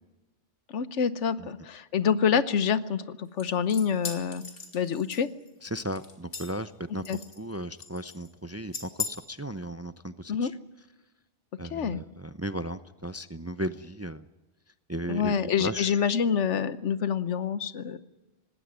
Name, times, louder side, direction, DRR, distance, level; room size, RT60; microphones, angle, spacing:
voice 1, 0.7-4.4 4.7-5.3 7.1-7.2 10.3-10.5 11.7-12.0 15.1-18.0, left 7 dB, 90° left, 14 dB, 1.3 m, -27 dB
sound 1, 3.4-5.5 5.9-6.7 7.0-7.5 7.8-8.3 8.7-9.1, left 5 dB, 55° left, 2.7 m, -38 dB
voice 2, 5.6-10.6 11.6-14.3 14.9-16.1, right 1 dB, 20° right, 12 dB, 0.5 m, -36 dB
19.0 x 17.0 x 9.6 m, 1.1 s
omnidirectional pair, 1.2 m